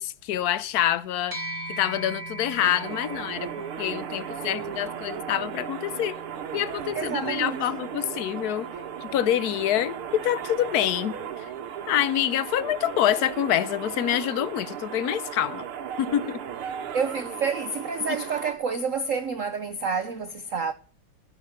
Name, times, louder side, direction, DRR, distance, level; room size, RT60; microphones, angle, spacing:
voice 1, 0.0-1.4 1.7-6.2 6.5-8.7 9.0-11.5 11.9-15.7 16.0-16.4 18.1-18.2, left 11 dB, 65° left, 1.0 m, -26 dB
sound 1, 1.3-10.9, right 2 dB, 40° right, 1.4 m, -42 dB
sound 2, 2.6-18.5, right 8 dB, 80° right, 2.1 m, -36 dB
voice 2, 6.9-7.6 16.9-20.7, right 5 dB, 60° right, 0.8 m, -28 dB
14.5 x 6.4 x 6.6 m
omnidirectional pair, 2.4 m